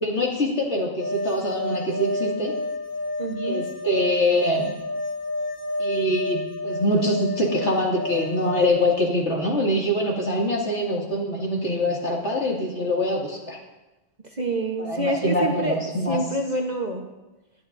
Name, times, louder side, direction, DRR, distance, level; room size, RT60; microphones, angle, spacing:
voice 1, 0.0-2.5 3.4-4.8 5.8-13.6 14.8-16.2, left 1 dB, 65° left, -3 dB, 2.6 m, -24 dB
sound 1, 1.0-8.7, left 2 dB, 45° left, 0.9 m, -30 dB
voice 2, 3.2-3.6 14.3-15.8 16.1-17.1, right 1 dB, 35° right, 2 dB, 1.2 m, -27 dB
21.0 x 10.5 x 2.6 m, 1.0 s
omnidirectional pair, 1.3 m